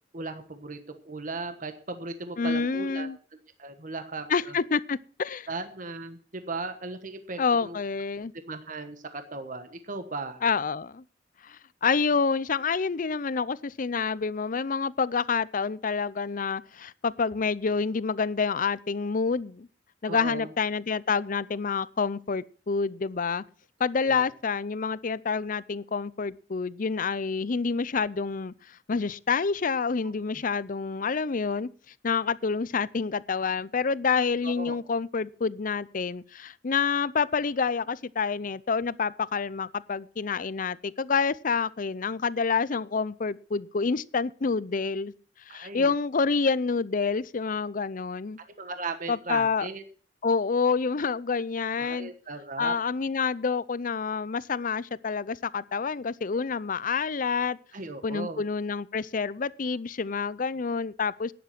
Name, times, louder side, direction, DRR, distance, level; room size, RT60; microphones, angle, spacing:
voice 1, 0.1-3.1 3.6-4.5 5.5-7.8 8.3-10.4 20.1-20.5 24.0-24.3 34.4-34.8 45.5-45.9 48.6-49.8 51.8-52.7 57.7-58.4, right 3 dB, 45° right, 1.3 m, -37 dB
voice 2, 2.4-3.2 4.3-5.5 7.4-8.3 10.4-11.0 11.4-19.7 20.0-23.4 23.8-31.7 32.0-45.1 45.5-48.4 49.1-49.7 50.2-52.1 52.6-57.6 58.0-61.3, left 5 dB, 50° left, 0.6 m, -28 dB
12.0 x 10.0 x 6.0 m
head